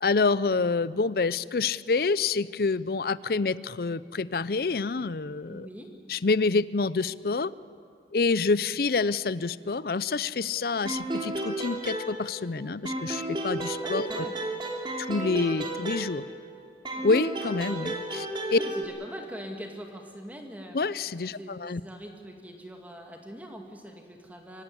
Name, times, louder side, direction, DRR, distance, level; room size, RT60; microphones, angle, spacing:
voice 1, 0.0-5.7 6.1-7.5 8.1-14.0 15.1-16.2 17.0-18.6 20.7-21.8, left 4 dB, 60° left, 18 dB, 0.5 m, -27 dB
voice 2, 5.5-5.9 13.8-14.4 17.0-17.1 18.5-20.8 21.3-24.6, equal, 10° right, 2 dB, 2.2 m, -42 dB
sound 1, 10.9-12.5 12.9-16.5 16.9-18.9, right 2 dB, 25° right, 3.0 m, -33 dB
25.0 x 15.5 x 9.8 m, 2.3 s
head